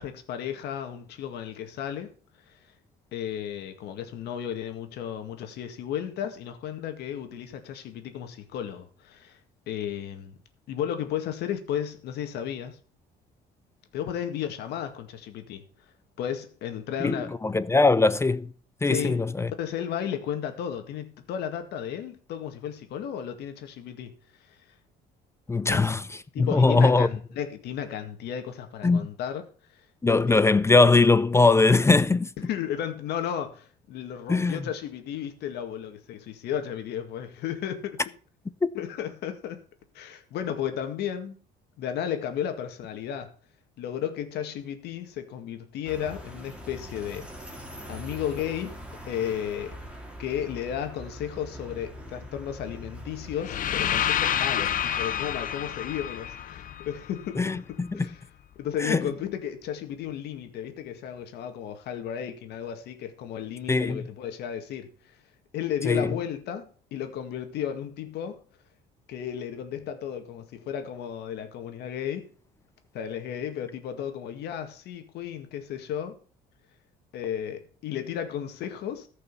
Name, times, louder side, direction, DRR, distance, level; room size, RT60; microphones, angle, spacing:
voice 1, 0.0-2.1 3.1-9.4 9.7-10.4 10.7-12.8 13.9-15.7 16.2-17.3 18.8-19.2 19.6-24.1 24.5-24.6 25.7-25.9 26.3-29.4 29.7-29.8 32.4-38.0 38.7-39.6 39.9-41.4 41.8-43.3 43.8-47.3 47.9-48.8 49.1-49.8 50.2-58.2 58.6-64.9 65.5-68.4 69.1-72.3 72.9-76.2 77.1-79.1, left 9 dB, 80° left, 2.0 m, -34 dB
voice 2, 17.0-18.5 18.8-19.5 25.5-26.1 26.4-27.1 28.8-29.1 30.0-32.3 34.3-34.6 57.4-58.1 58.8-59.1 63.7-64.0 65.8-66.1, left 3 dB, 15° left, 0.5 m, -21 dB
sound 1, 45.8-53.4, equal, 5° right, 2.7 m, -42 dB
sound 2, 53.4-57.4, left 10 dB, 55° left, 0.8 m, -28 dB
14.0 x 5.5 x 6.9 m
cardioid pair, 110°, 17 cm